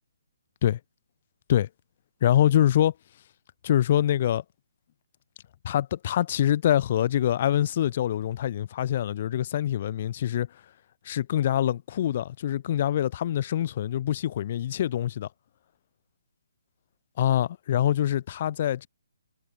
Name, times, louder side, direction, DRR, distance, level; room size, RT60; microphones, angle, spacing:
voice 1, 2.2-2.9 3.6-4.4 5.6-10.5 11.0-15.3 17.2-18.9, left 11 dB, 40° left, 1.7 m, -24 dB
hypercardioid pair, 150°, 0 cm